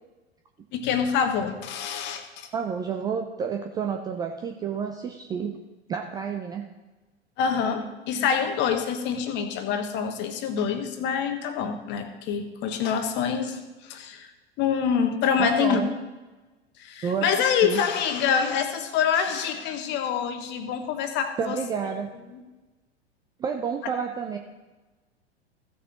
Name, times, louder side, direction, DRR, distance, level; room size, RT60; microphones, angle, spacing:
voice 1, 0.7-2.5 7.4-14.3 14.6-15.8 16.8-21.6 22.3-22.4, left 7 dB, 35° left, 7 dB, 1.1 m, -26 dB
voice 2, 2.5-5.6 5.9-6.7 15.4-15.9 17.0-17.8 21.4-22.1 23.4-24.4, right 6 dB, 10° right, 4 dB, 0.4 m, -30 dB
15.0 x 6.6 x 3.8 m, 1.2 s
figure-of-eight pair, 90°, 33 cm